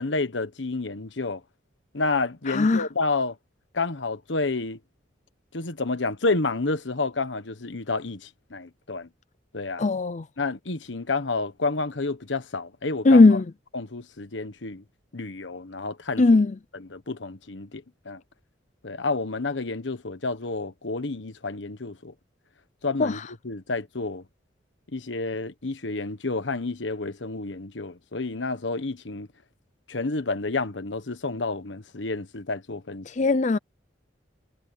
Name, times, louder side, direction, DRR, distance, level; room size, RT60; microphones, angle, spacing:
voice 1, 0.0-1.4 1.9-3.4 3.7-4.8 5.5-9.1 9.5-9.9 10.4-13.4 13.7-14.8 15.1-16.2 16.8-18.2 18.8-22.1 22.8-24.2 24.9-29.3 29.9-33.3, left 3 dB, 90° left, 1.3 m, -30 dB
voice 2, 2.5-2.9 9.8-10.2 13.0-13.4 16.2-16.5 23.0-23.2 33.1-33.6, left 3 dB, 40° left, 0.5 m, -18 dB
head